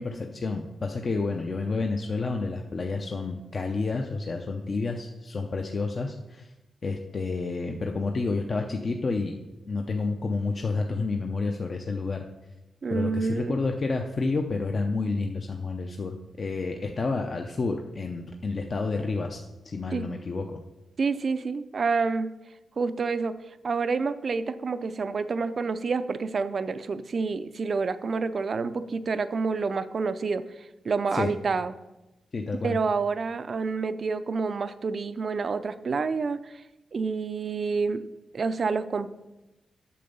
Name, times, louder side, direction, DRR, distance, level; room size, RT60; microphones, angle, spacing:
voice 1, 0.0-6.5 6.8-9.4 9.7-12.2 12.9-20.6 31.1-31.3 32.3-32.8, left 3 dB, 40° left, 3 dB, 0.6 m, -30 dB
voice 2, 12.8-13.6 19.9-20.0 21.0-22.3 22.8-23.3 23.6-31.7 32.6-36.6 36.9-38.0 38.3-39.1, right 4 dB, 45° right, 12 dB, 0.5 m, -28 dB
8.5 x 6.8 x 5.4 m, 1.0 s
wide cardioid pair, 140°, 0 cm